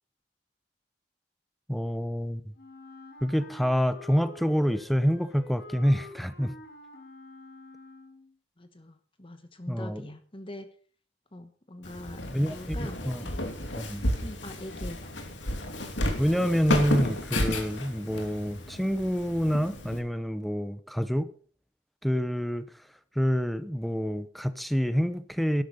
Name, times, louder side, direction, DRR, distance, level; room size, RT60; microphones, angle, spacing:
voice 1, 1.7-2.4 3.2-6.5 9.7-10.1 12.3-13.3 13.7-14.1 16.2-21.3 22.0-22.7 23.2-25.6, equal, ahead, 0.7 m, -27 dB
Wind instrument woodwind instrument, 2.5-8.3, left 2 dB, 60° left, 5.6 m, -48 dB
voice 2, 8.6-10.7 11.3-12.2 12.5-13.0 14.2-15.1, left 1 dB, 30° left, 1.2 m, -43 dB
Walk footsteps, 11.8-20.0, left 1 dB, 90° left, 2.9 m, -32 dB
12.0 x 12.0 x 5.2 m
head